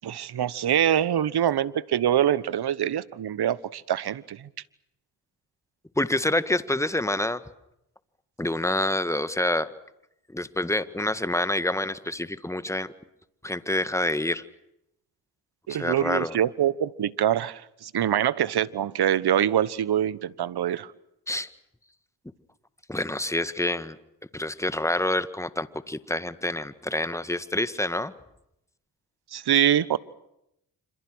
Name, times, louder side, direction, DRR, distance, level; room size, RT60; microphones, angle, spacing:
voice 1, 0.0-4.5 15.7-20.9 29.3-30.0, right 10 dB, 60° right, 19 dB, 1.3 m, -24 dB
voice 2, 6.0-7.4 8.4-9.7 10.3-12.9 13.4-14.4 15.8-16.3 21.3-21.5 22.9-24.0 24.3-28.1, left 1 dB, 5° left, 13 dB, 1.9 m, -27 dB
27.0 x 27.0 x 6.4 m, 0.81 s
supercardioid pair, 50°, 43 cm